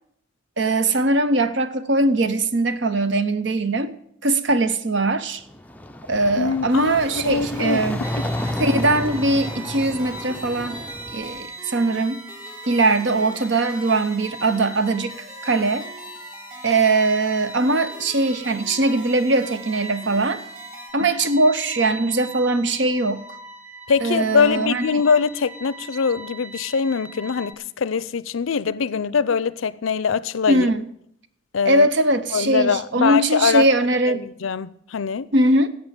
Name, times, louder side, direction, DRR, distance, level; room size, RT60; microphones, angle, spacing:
voice 1, 0.6-3.9 4.2-5.4 6.1-8.0 8.6-10.8 11.1-12.2 12.7-15.2 15.4-15.9 16.6-20.4 20.9-23.2 24.0-24.8 30.5-30.9 31.6-34.3 35.3-35.7, right 2 dB, 65° right, 0.9 m, -21 dB
sound 1, 5.4-11.4, left 1 dB, 10° left, 0.4 m, -31 dB
voice 2, 6.4-8.5 21.0-21.1 23.9-30.7 31.5-31.9 32.3-33.6 34.1-35.3, left 6 dB, 85° left, 0.5 m, -23 dB
sound 2, 6.7-20.9, right 2 dB, 45° right, 3.4 m, -44 dB
sound 3, 8.0-27.5, right 1 dB, 10° right, 0.7 m, -40 dB
10.5 x 8.0 x 8.8 m
head